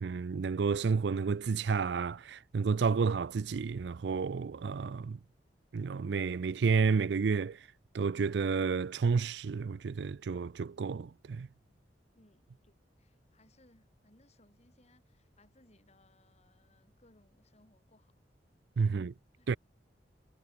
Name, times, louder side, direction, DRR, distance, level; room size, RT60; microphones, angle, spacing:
voice 1, 0.0-5.2 5.7-7.7 7.9-11.5 18.8-19.1 19.5-19.6, right 5 dB, 70° right, 0.4 m, -31 dB
voice 2, 12.1-18.2 18.9-19.5, left 1 dB, 40° left, 5.4 m, -66 dB
head